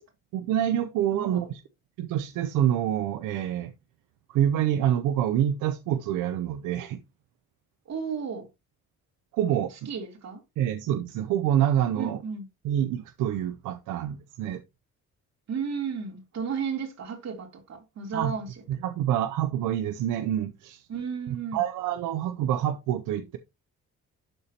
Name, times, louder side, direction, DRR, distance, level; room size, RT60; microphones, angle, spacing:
voice 1, 0.3-1.6 2.0-3.7 4.3-7.0 9.3-9.9 10.6-12.2 12.6-14.6 18.1-18.3 18.7-20.9 21.3-23.4, right 10 dB, 90° right, 0.6 m, -27 dB
voice 2, 1.1-1.5 7.8-8.5 9.8-10.4 12.0-12.4 15.5-18.5 20.9-21.6, right 6 dB, 60° right, 3.2 m, -33 dB
12.0 x 4.2 x 2.9 m
cardioid pair, 90°, 30 cm